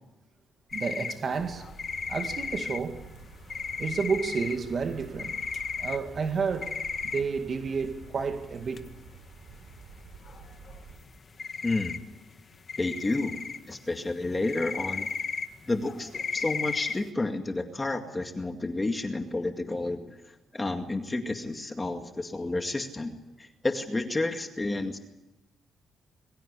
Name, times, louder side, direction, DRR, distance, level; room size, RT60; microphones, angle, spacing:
sound 1, 0.7-7.5 7.8-7.9 8.1-8.2 8.5-8.8 9.2-9.3 9.5-10.0 10.3-11.1 11.4-12.4 12.7-17.1, left 5 dB, 40° left, 1.7 m, -35 dB
voice 1, 0.7-1.7 2.1-3.1 3.8-5.4 5.8-6.8 7.1-8.9, right 5 dB, 45° right, 2.1 m, -30 dB
sound 2, 1.3-11.0, right 4 dB, 80° right, 6.9 m, -48 dB
voice 2, 11.6-12.0 12.8-13.4 13.7-15.1 15.7-20.0 20.5-25.0, left 2 dB, 20° left, 2.1 m, -30 dB
25.5 x 23.0 x 8.4 m
cardioid pair, 110°, 0 cm